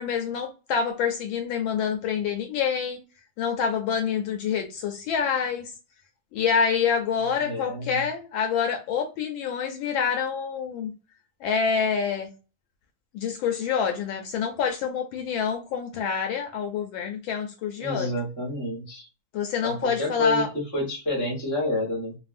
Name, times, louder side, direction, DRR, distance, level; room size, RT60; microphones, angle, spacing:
voice 1, 0.0-3.0 3.4-5.7 6.3-10.9 11.4-12.3 13.1-18.1 19.3-20.5, left 6 dB, 75° left, 1.2 m, -27 dB
voice 2, 7.4-8.0 17.8-19.1 19.6-22.2, left 1 dB, 15° left, 0.6 m, -29 dB
3.4 x 2.3 x 2.4 m
omnidirectional pair, 2.4 m